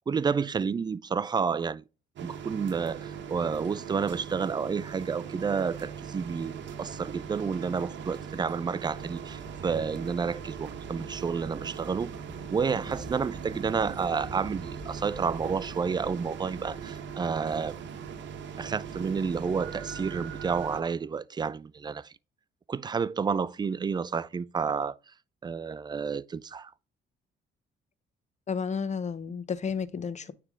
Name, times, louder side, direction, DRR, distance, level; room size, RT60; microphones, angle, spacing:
voice 1, 0.1-1.8 2.2-12.1 12.5-17.7 18.6-22.1 22.7-25.0 25.4-26.7, right 5 dB, 20° right, 0.3 m, -30 dB
sound 1, 2.2-20.8, right 7 dB, 65° right, 1.1 m, -40 dB
sound 2, 8.8-18.3, left 1 dB, 5° left, 1.7 m, -49 dB
voice 2, 28.5-30.3, left 6 dB, 35° left, 0.7 m, -32 dB
9.4 x 3.4 x 3.6 m
cardioid pair, 90°, 20 cm